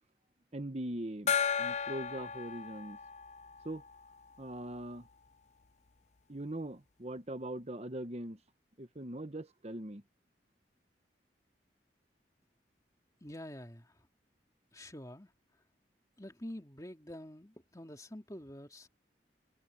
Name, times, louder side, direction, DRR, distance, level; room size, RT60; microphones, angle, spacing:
voice 1, 0.5-3.0 3.6-3.8 4.4-5.1 6.3-8.4 8.8-10.0, right 1 dB, 35° right, 1.2 m, -41 dB
Gong, 1.3-4.5, left 7 dB, 40° left, 0.6 m, -35 dB
voice 2, 13.2-14.1 14.7-15.6 16.2-18.9, left 1 dB, 20° left, 2.6 m, -47 dB
head